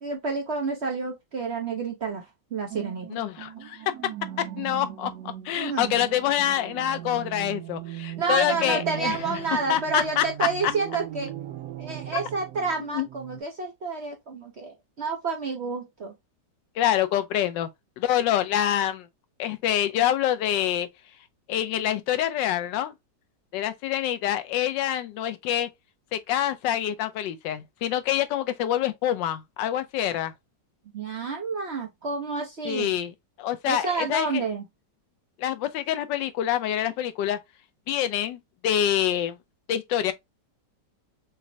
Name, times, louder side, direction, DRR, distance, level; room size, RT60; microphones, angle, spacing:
voice 1, 0.0-2.3 2.5-3.1 5.6-5.9 8.2-11.3 11.8-16.1 30.9-33.0 33.7-34.6, right 4 dB, 55° right, 0.8 m, -29 dB
sound 1, 2.7-13.4, right 12 dB, 75° right, 1.2 m, -39 dB
voice 2, 3.1-3.8 4.4-5.1 5.4-9.4 9.7-10.5 12.1-12.2 12.9-13.1 16.8-17.7 18.0-19.1 19.4-20.9 21.5-22.9 23.5-25.7 26.1-30.3 32.6-33.1 33.4-34.4 35.4-37.4 37.9-39.4 39.7-40.1, left 11 dB, 85° left, 1.3 m, -26 dB
6.0 x 2.1 x 2.6 m
omnidirectional pair, 1.9 m